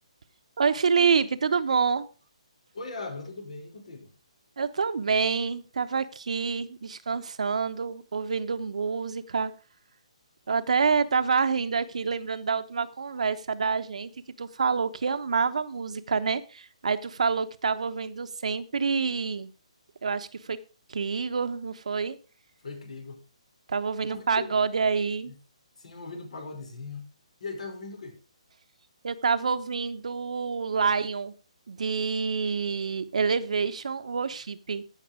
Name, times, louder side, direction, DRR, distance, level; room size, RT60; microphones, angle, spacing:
voice 1, 0.6-2.1 4.6-9.5 10.5-14.1 14.4-19.5 20.0-20.6 20.9-22.2 23.7-25.3 29.0-31.3 31.7-34.8, right 5 dB, 70° right, 1.0 m, -27 dB
voice 2, 2.7-4.1 10.9-11.0 22.6-23.2 24.1-24.2 25.3-25.4 25.8-27.1 27.4-28.2, left 3 dB, 70° left, 5.3 m, -39 dB
16.0 x 5.9 x 5.0 m
hypercardioid pair, 150°, 4 cm